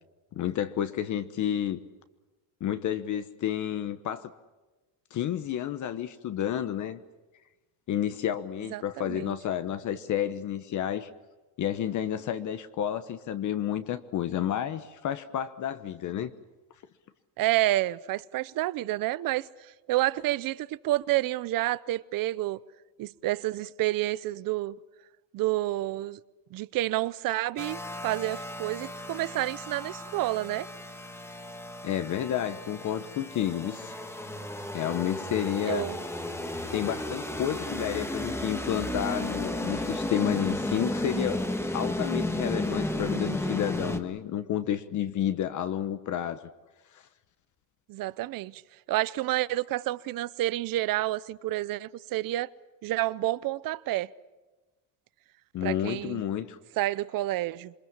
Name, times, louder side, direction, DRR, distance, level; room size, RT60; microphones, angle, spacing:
voice 1, 0.3-1.8 2.6-4.3 5.1-7.0 7.9-11.1 11.6-16.3 31.8-33.9 34.7-35.9 36.7-41.4 41.7-46.4 46.9-47.0 55.5-56.6, left 10 dB, 45° left, 1.1 m, -30 dB
voice 2, 8.7-9.4 17.4-22.6 23.0-24.8 25.3-26.2 26.5-30.7 35.6-36.0 47.9-48.6 48.9-52.5 52.8-54.1 55.6-56.2 56.8-57.7, right 16 dB, 50° right, 0.7 m, -29 dB
sound 1, 27.6-44.0, left 1 dB, 5° left, 1.5 m, -34 dB
27.0 x 23.5 x 7.3 m
cardioid pair, 155°, 42 cm